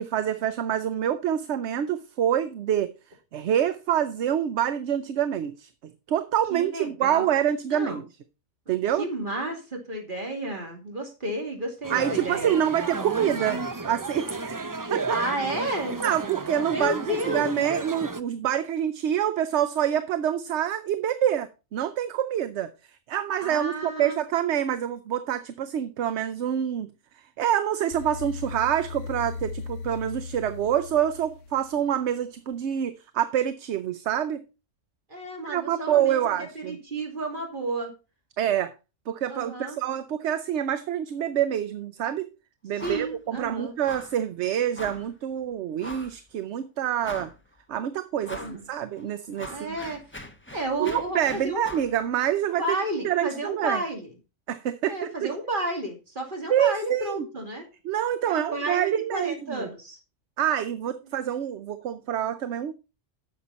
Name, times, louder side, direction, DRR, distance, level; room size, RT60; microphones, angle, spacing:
voice 1, 0.0-2.9 3.3-8.0 8.7-9.1 11.9-15.2 16.0-22.7 23.1-26.9 27.4-34.4 35.4-36.8 38.4-38.7 39.1-42.3 42.6-47.3 47.7-49.8 50.8-52.8 53.0-53.8 54.5-55.3 56.5-57.2 57.8-59.7 60.4-62.7, right 10 dB, 65° right, 0.9 m, -26 dB
voice 2, 6.5-7.2 7.7-8.0 9.0-12.5 15.1-16.0 16.7-17.4 23.4-24.1 35.1-37.9 39.3-39.8 42.8-43.7 48.2-48.6 49.5-50.0 50.5-51.6 52.6-54.1 54.9-57.7 58.2-60.0, right 1 dB, 40° right, 2.8 m, -32 dB
sound 1, 11.8-18.2, right 3 dB, 25° right, 0.5 m, -32 dB
sound 2, 27.9-32.0, left 4 dB, 80° left, 1.1 m, -38 dB
sound 3, 42.8-43.1 43.4-43.5 43.8-44.2 44.7-45.1 45.8-46.2 46.6-46.7 47.0-47.5 48.2-48.6 49.0-51.9, left 1 dB, 10° left, 1.0 m, -41 dB
10.5 x 7.1 x 4.0 m
omnidirectional pair, 1.3 m